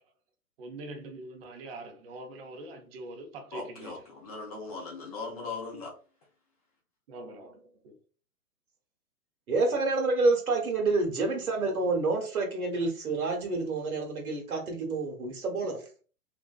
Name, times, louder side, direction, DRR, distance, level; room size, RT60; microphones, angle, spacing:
voice 1, 0.6-4.0 7.1-8.0, right 2 dB, 45° right, 0.6 m, -43 dB
voice 2, 3.5-5.9, left 4 dB, 25° left, 0.5 m, -39 dB
voice 3, 9.5-15.8, right 3 dB, 70° right, 1.1 m, -28 dB
2.5 x 2.1 x 2.3 m
figure-of-eight pair, 115°, 44 cm